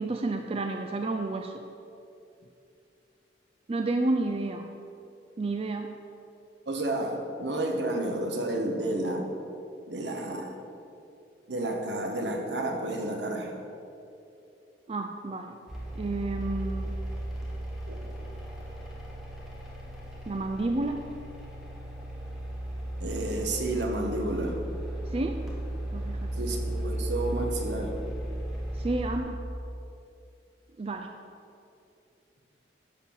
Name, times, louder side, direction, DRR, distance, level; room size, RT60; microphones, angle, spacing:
voice 1, 0.0-1.6 3.7-4.7 5.4-5.9 14.9-15.6 16.0-17.0 20.3-21.0 25.1-25.4 25.9-26.3 28.7-29.4 30.8-31.1, right 2 dB, 35° right, 4 dB, 0.4 m, -30 dB
voice 2, 6.7-9.3 9.9-10.5 11.5-13.5 17.9-18.0 23.0-24.7 26.4-28.0, right 1 dB, 75° right, 2 dB, 1.3 m, -31 dB
sound 1, 15.7-29.2, right 1 dB, ahead, 1.7 m, -35 dB
11.0 x 4.5 x 7.3 m, 2.7 s
head